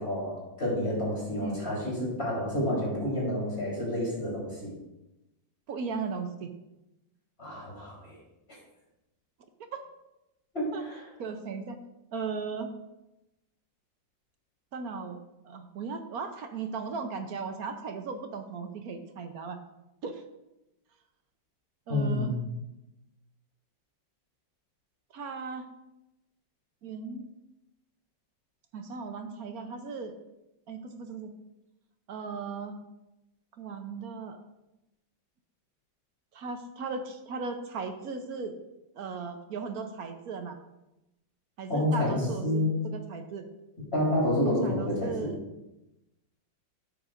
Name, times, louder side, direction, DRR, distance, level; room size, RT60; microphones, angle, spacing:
voice 1, 0.0-4.7 7.4-8.2 10.5-11.0 21.9-22.4 41.7-42.8 43.9-45.3, left 1 dB, 30° left, -5 dB, 4.0 m, -29 dB
voice 2, 5.7-6.5 9.7-9.8 10.7-10.8 11.2-11.8 12.1-12.7 14.7-15.2 15.4-19.6 20.0-20.2 21.9-22.3 25.1-25.6 26.8-27.3 28.7-30.1 30.7-31.3 32.1-32.8 33.6-34.4 36.3-38.6 39.0-40.6 41.6-43.5 44.4-45.4, right 5 dB, 60° right, 7 dB, 1.1 m, -37 dB
12.5 x 9.1 x 2.5 m, 0.94 s
omnidirectional pair, 2.0 m